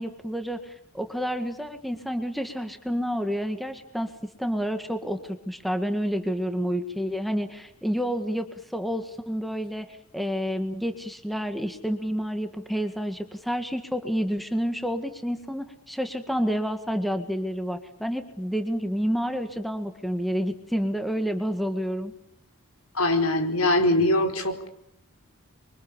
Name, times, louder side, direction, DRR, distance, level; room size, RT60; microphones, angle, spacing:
voice 1, 0.0-4.1 4.4-9.9 10.1-22.1, equal, ahead, 7 dB, 1.9 m, -29 dB
voice 2, 22.9-24.7, left 1 dB, 75° left, 7 dB, 4.8 m, -22 dB
29.5 x 24.5 x 7.1 m, 0.73 s
head